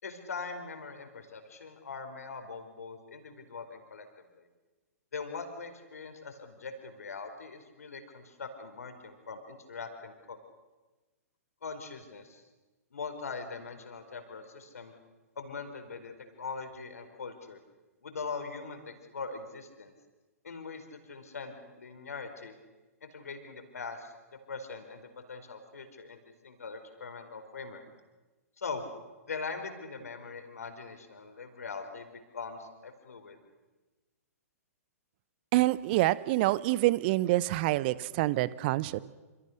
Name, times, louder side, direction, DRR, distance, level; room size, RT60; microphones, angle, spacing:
voice 1, 0.0-4.1 4.4-4.5 5.1-10.4 11.6-12.4 12.9-14.9 15.4-17.6 18.0-19.9 20.4-22.6 23.0-24.1 24.5-26.2 26.4-27.9 28.6-28.9 29.3-33.4, left 4 dB, 70° left, 6 dB, 4.6 m, -41 dB
voice 2, 35.5-39.0, right 17 dB, 40° right, 18 dB, 1.0 m, -26 dB
27.5 x 27.5 x 6.6 m, 1.2 s
figure-of-eight pair, 115°, 9 cm